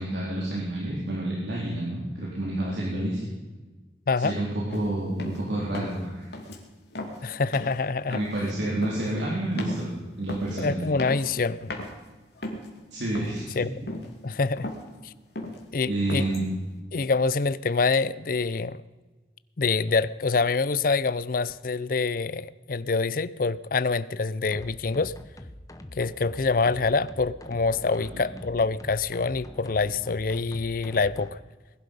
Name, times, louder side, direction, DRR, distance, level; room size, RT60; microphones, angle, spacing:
voice 1, 0.0-3.2 4.2-6.3 8.1-9.9 10.2-10.8 12.9-13.6 15.9-16.4 28.1-28.2, right 1 dB, 80° right, -5 dB, 3.8 m, -29 dB
sound 1, 4.7-4.9 5.2-5.4 5.7-6.1 6.3-6.6 6.9-7.2 7.5-7.8 8.1-8.5 8.8-9.1 9.6-9.9 10.3-10.5 11.0-11.4 11.7-11.9 12.4-12.8 13.1-13.5 13.9-14.2 14.4-14.9 15.4-15.6 16.1-16.5, left 1 dB, 70° left, 2.8 m, -37 dB
voice 2, 7.2-8.2 10.6-11.7 13.5-13.7 14.2-14.7 15.0-15.1 15.7-16.3 16.9-18.8 19.6-25.1 25.9-31.4, left 4 dB, 50° left, 17 dB, 0.5 m, -26 dB
sound 2, 24.5-31.3, left 1 dB, 20° left, 0.9 m, -44 dB
20.5 x 11.5 x 5.4 m, 1.2 s
head